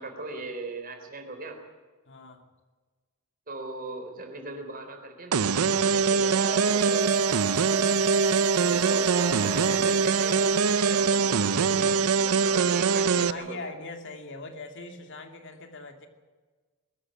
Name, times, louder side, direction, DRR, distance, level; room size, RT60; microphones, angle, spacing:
voice 1, 0.0-1.6 3.5-7.2 8.2-13.6, right 2 dB, 40° right, 4 dB, 3.9 m, -39 dB
voice 2, 2.1-2.4 13.0-16.1, left 3 dB, 55° left, 5 dB, 2.7 m, -41 dB
sound 1, 5.3-13.3, right 5 dB, 80° right, 0.7 m, -23 dB
sound 2, 6.1-11.6 11.9-12.0, right 1 dB, 15° right, 1.8 m, -37 dB
22.0 x 13.5 x 9.9 m, 1.4 s
head